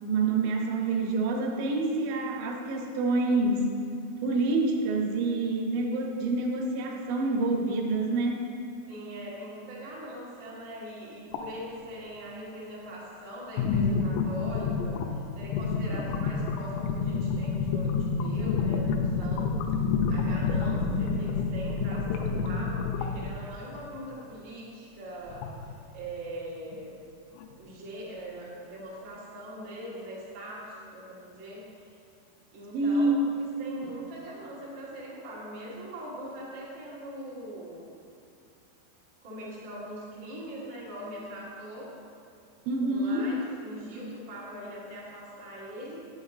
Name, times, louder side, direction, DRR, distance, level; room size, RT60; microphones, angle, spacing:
voice 1, 0.0-3.8 4.2-8.5 32.7-33.3 42.7-43.3, right 2 dB, 75° right, 0 dB, 2.3 m, -27 dB
voice 2, 8.9-27.0 27.6-32.0 32.5-37.9 39.2-42.0 42.8-46.1, equal, 90° right, -7 dB, 1.0 m, -41 dB
sound 1, 11.3-11.5 13.6-23.4 25.3-25.9 26.7-26.8 27.4-27.5, left 5 dB, 80° left, 2.5 m, -28 dB
9.2 x 7.0 x 4.0 m, 2.5 s
omnidirectional pair, 5.5 m